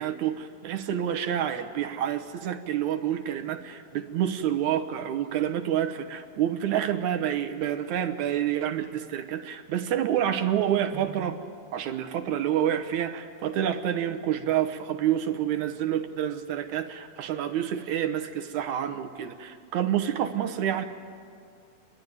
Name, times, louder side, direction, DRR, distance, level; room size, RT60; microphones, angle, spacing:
voice 1, 0.0-11.4 11.7-20.8, right 10 dB, 70° right, 7 dB, 2.1 m, -28 dB
30.0 x 11.5 x 9.3 m, 2.3 s
omnidirectional pair, 4.0 m